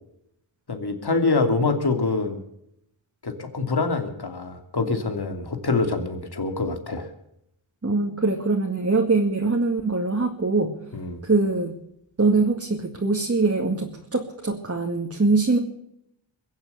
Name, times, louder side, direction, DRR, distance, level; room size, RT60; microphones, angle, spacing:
voice 1, 0.7-2.4 3.2-7.1 10.9-11.2, left 3 dB, 50° left, 6 dB, 2.7 m, -25 dB
voice 2, 7.8-10.8 11.2-11.8 12.2-15.6, right 3 dB, 30° right, 1 dB, 2.2 m, -23 dB
22.5 x 8.1 x 8.0 m, 0.78 s
cardioid pair, 60°, 48 cm